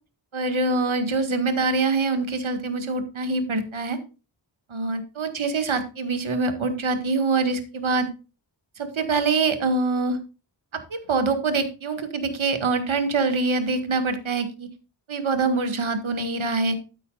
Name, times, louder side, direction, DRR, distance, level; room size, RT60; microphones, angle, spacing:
voice 1, 0.3-4.0 4.7-8.1 8.8-10.2 10.7-14.7 15.1-16.8, right 3 dB, 80° right, 7 dB, 1.9 m, -24 dB
13.5 x 8.4 x 2.4 m, 0.33 s
wide cardioid pair, 90°, 47 cm